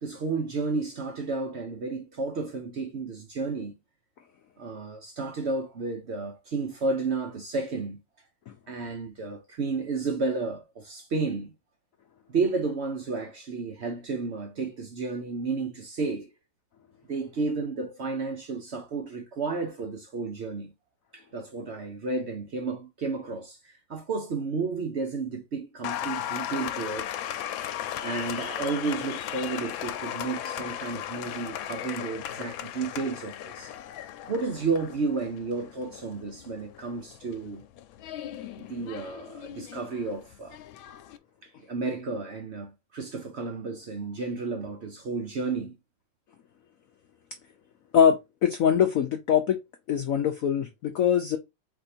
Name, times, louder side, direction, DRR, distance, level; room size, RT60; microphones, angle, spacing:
voice 1, 0.0-3.7 4.6-8.0 8.7-11.5 12.3-16.3 17.1-20.7 21.1-27.1 28.0-33.7 34.3-37.6 38.6-40.6 41.4-45.8, right 4 dB, 60° right, 0.7 m, -32 dB
Applause, 25.8-41.2, left 11 dB, 90° left, 1.4 m, -37 dB
voice 2, 47.9-49.6 49.9-51.4, left 8 dB, 70° left, 0.8 m, -23 dB
4.4 x 2.6 x 4.2 m
omnidirectional pair, 2.1 m